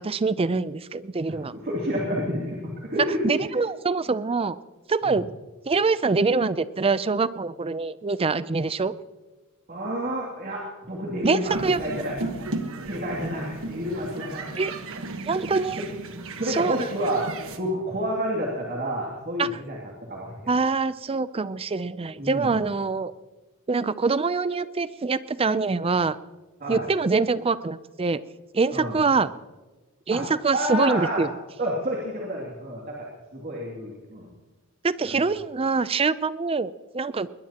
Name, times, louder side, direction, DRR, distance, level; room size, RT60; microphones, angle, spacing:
voice 1, 0.0-1.5 3.2-4.6 4.9-5.2 5.7-8.9 11.2-11.8 14.6-14.7 15.3-15.8 16.5-16.9 19.4-19.5 20.5-23.1 23.7-26.2 26.7-28.2 28.5-29.3 30.1-31.3 34.8-37.3, right 4 dB, 25° right, 15 dB, 0.5 m, -24 dB
voice 2, 1.2-3.2 5.0-5.2 9.7-12.2 12.8-14.5 16.4-17.3 17.6-19.8 20.1-20.4 22.2-22.6 26.6-26.8 28.7-29.0 30.1-30.2 30.5-31.2 31.6-33.1 33.3-34.3, equal, 40° right, -3 dB, 2.6 m, -29 dB
sound 1, 11.4-17.6, right 2 dB, 65° right, 1.3 m, -35 dB
21.5 x 20.5 x 2.9 m, 1.2 s
head